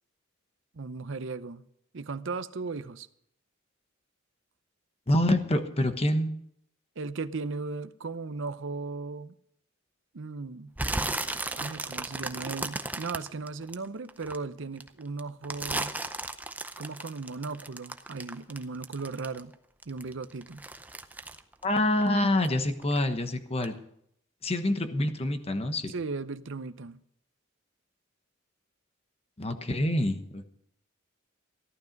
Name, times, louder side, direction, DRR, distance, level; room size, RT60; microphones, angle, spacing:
voice 1, 0.7-1.6 1.9-3.1 7.0-9.3 10.1-10.7 11.6-16.0 16.8-19.5 19.9-20.6 25.9-27.0, right 4 dB, 65° right, 0.7 m, -36 dB
voice 2, 5.1-6.3 21.6-23.8 24.4-25.9 29.4-30.4, left 1 dB, 30° left, 1.1 m, -26 dB
sound 1, 10.8-14.4 14.8-19.5 19.8-22.5 22.8-23.2 23.6-23.7, right 2 dB, 10° right, 0.6 m, -35 dB
14.5 x 12.0 x 5.2 m
head